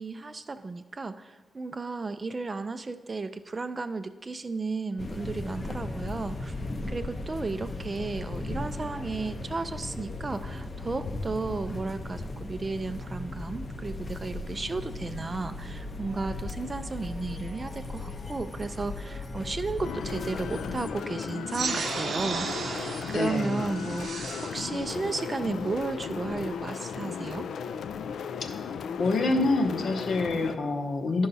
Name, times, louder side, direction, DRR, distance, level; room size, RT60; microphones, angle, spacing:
voice 1, 0.0-6.5 6.9-27.4, right 3 dB, 25° right, 10 dB, 0.3 m, -34 dB
sound 1, 5.0-20.9, left 2 dB, 35° left, 0.6 m, -37 dB
sound 2, 19.8-30.6, left 6 dB, 80° left, 0.3 m, -36 dB
sound 3, 21.5-26.5, right 5 dB, 60° right, 0.6 m, -35 dB
voice 2, 23.1-23.6 29.0-31.3, left 3 dB, 60° left, 5 dB, 0.8 m, -26 dB
11.0 x 5.5 x 4.0 m, 1.2 s
wide cardioid pair, 145°, 0 cm